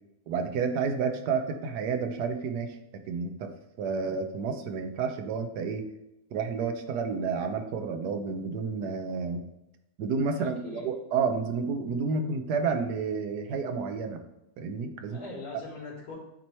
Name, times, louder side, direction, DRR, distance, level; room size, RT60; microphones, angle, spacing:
voice 1, 0.3-2.8 3.1-3.5 3.8-5.9 6.3-9.4 10.0-14.2 14.6-15.2, right 5 dB, 85° right, 6 dB, 1.3 m, -30 dB
voice 2, 10.3-10.9 15.0-16.2, left 3 dB, 85° left, -4 dB, 2.5 m, -42 dB
9.2 x 3.1 x 4.4 m, 0.87 s
omnidirectional pair, 1.7 m